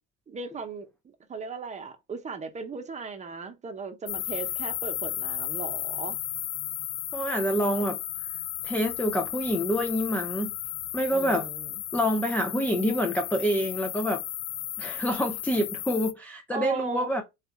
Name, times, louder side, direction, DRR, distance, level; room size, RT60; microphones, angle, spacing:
voice 1, 0.3-0.9 1.3-6.2 11.1-11.7 16.5-17.1, right 4 dB, 25° right, 0.8 m, -37 dB
sound 1, 4.1-16.1, left 13 dB, 80° left, 0.6 m, -34 dB
voice 2, 7.1-8.0 8.6-10.5 10.9-11.5 11.9-14.2 14.8-17.2, equal, 5° left, 0.4 m, -27 dB
4.0 x 2.4 x 3.5 m
cardioid pair, 115°, 30 cm